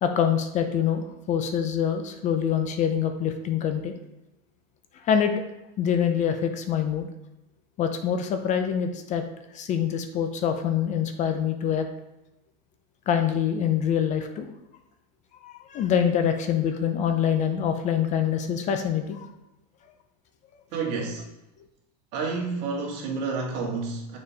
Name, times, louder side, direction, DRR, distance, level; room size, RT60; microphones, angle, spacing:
voice 1, 0.0-3.9 4.9-5.3 5.8-7.1 7.8-9.2 9.5-11.9 13.1-14.5 15.4-19.3, left 8 dB, 35° left, 7 dB, 0.6 m, -25 dB
voice 2, 20.7-21.2 22.1-24.2, right 4 dB, 55° right, -1 dB, 1.7 m, -30 dB
6.6 x 4.3 x 3.5 m, 0.94 s
supercardioid pair, 125°, 21 cm